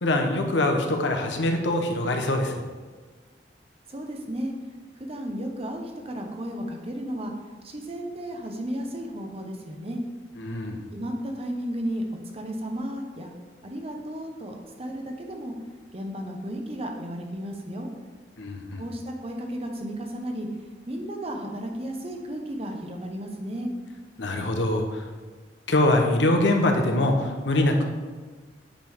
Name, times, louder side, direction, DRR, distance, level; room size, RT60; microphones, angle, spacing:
voice 1, 0.0-2.6 10.4-10.9 18.4-18.8 24.2-25.1 25.7-27.9, left 1 dB, 90° left, 3 dB, 1.0 m, -23 dB
voice 2, 3.9-4.5 5.0-7.3 7.6-10.0 10.9-12.0 12.3-13.3 13.6-15.5 15.9-17.9 18.7-20.5 20.9-23.7, equal, 35° right, 3 dB, 1.0 m, -33 dB
8.9 x 5.1 x 3.6 m, 1.4 s
head